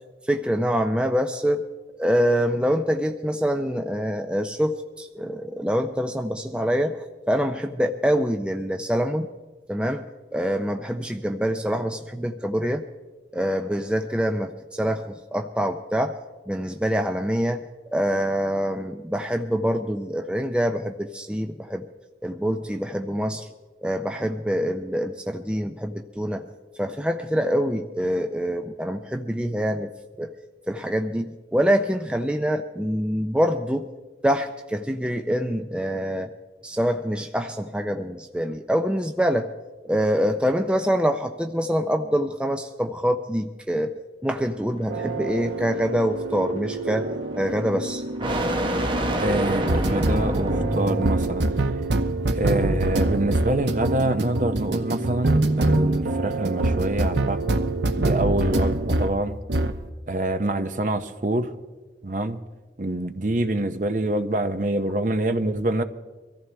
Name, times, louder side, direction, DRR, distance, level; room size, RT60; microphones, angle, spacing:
voice 1, 0.3-1.6 2.0-7.0 7.3-9.3 9.7-10.0 10.3-12.8 13.3-16.1 16.5-17.6 17.9-21.9 22.2-23.5 23.8-26.4 26.8-29.9 30.2-30.3 30.7-33.9 34.2-36.3 36.6-39.5 39.8-43.9 44.2-47.1 47.4-48.0, equal, 5° right, 0.5 m, -25 dB
sound 1, 44.3-51.4, right 1 dB, 25° right, 1.1 m, -28 dB
sound 2, 44.9-59.2 59.5-59.8, right 2 dB, 85° right, 0.9 m, -25 dB
voice 2, 49.2-51.7 52.3-57.6 58.0-59.4 60.1-61.5 62.0-62.4 62.8-65.8, right 1 dB, 45° right, 0.8 m, -26 dB
23.5 x 14.5 x 3.4 m
head